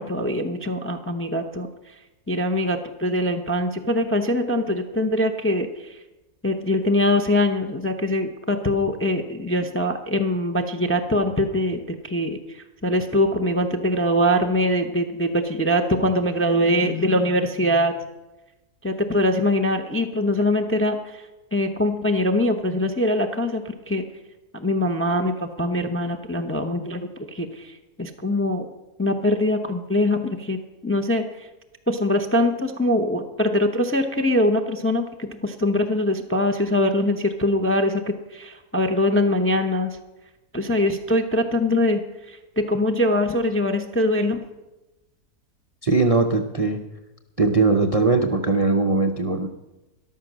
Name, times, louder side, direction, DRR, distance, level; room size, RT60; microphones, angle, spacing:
voice 1, 0.0-1.7 2.3-6.0 6.4-18.0 18.8-24.0 24.5-28.7 29.0-30.6 30.8-31.5 31.9-40.0 40.5-44.5, left 1 dB, 15° left, 4 dB, 0.4 m, -23 dB
voice 2, 45.8-46.8 47.4-49.5, right 3 dB, 45° right, 5 dB, 0.5 m, -20 dB
13.5 x 11.5 x 6.2 m, 1.0 s
omnidirectional pair, 1.6 m